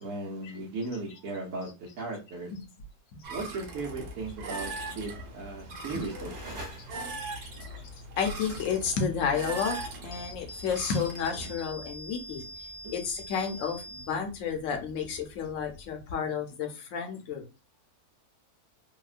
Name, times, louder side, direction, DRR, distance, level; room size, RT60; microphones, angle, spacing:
voice 1, 0.0-2.5 3.3-6.6, right 3 dB, 65° right, 1.1 m, -37 dB
sound 1, 3.2-11.5, right 2 dB, 85° right, 1.3 m, -40 dB
sound 2, 5.1-7.4, right 1 dB, 30° right, 1.1 m, -46 dB
voice 2, 6.8-17.4, left 6 dB, 65° left, 0.9 m, -32 dB
sound 3, 9.6-16.0, equal, 85° left, 0.5 m, -45 dB
2.9 x 2.1 x 2.4 m
omnidirectional pair, 1.6 m